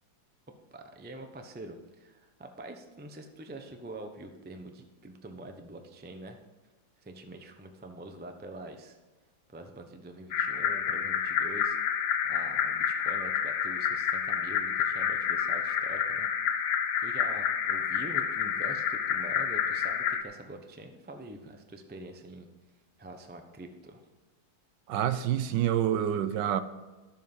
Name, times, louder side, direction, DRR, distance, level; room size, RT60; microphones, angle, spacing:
voice 1, 0.7-6.4 7.0-9.0 9.5-11.8 12.2-16.3 17.0-22.5 23.0-24.0, right 2 dB, 15° right, 0.3 m, -45 dB
sound 1, 10.3-20.2, left 8 dB, 70° left, 1.5 m, -29 dB
voice 2, 24.9-26.6, right 10 dB, 75° right, 1.2 m, -27 dB
13.0 x 7.4 x 5.5 m
omnidirectional pair, 2.1 m